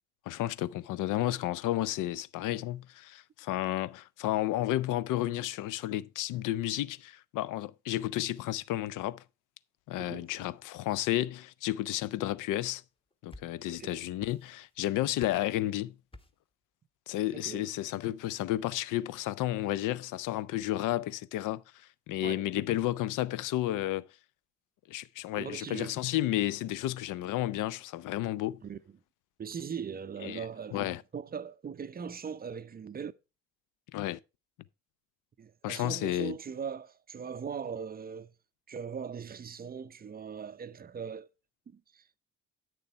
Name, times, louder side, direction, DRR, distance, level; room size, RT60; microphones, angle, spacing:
voice 1, 0.3-9.2 9.9-12.8 13.2-15.9 17.1-24.1 24.9-28.6 30.2-31.0 33.9-34.2 35.6-36.4, left 14 dB, 55° left, 0.6 m, -32 dB
sound 1, 12.9-13.9 14.2-14.8 15.2-15.6 16.1-16.5, left 1 dB, 15° left, 1.1 m, -52 dB
voice 2, 13.7-14.0 17.3-17.6 22.2-22.4 25.4-26.1 28.6-28.8 29.4-33.1 35.4-38.3 38.7-41.3 41.7-42.0, right 7 dB, 25° right, 0.6 m, -40 dB
9.0 x 6.7 x 4.4 m
hypercardioid pair, 50°, 38 cm